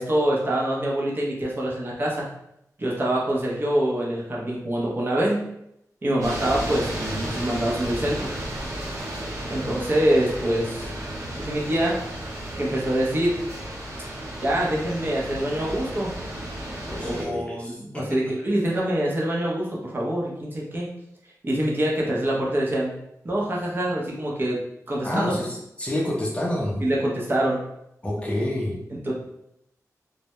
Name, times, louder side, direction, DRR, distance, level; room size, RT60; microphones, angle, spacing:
voice 1, 0.0-2.3 2.8-5.4 6.0-8.3 9.5-10.9 11.4-12.0 12.6-13.4 14.4-16.1 17.0-20.9 21.4-22.9 23.2-24.6 24.9-25.4 26.8-27.6 28.9-29.1, right 1 dB, 35° right, -4 dB, 0.6 m, -25 dB
sound 1, 6.2-17.2, right 1 dB, 65° right, 0.8 m, -33 dB
voice 2, 16.9-18.4 25.0-26.8 28.0-28.8, left 1 dB, 20° left, -3 dB, 0.5 m, -28 dB
2.1 x 2.0 x 2.8 m, 0.79 s
wide cardioid pair, 100°, 6 cm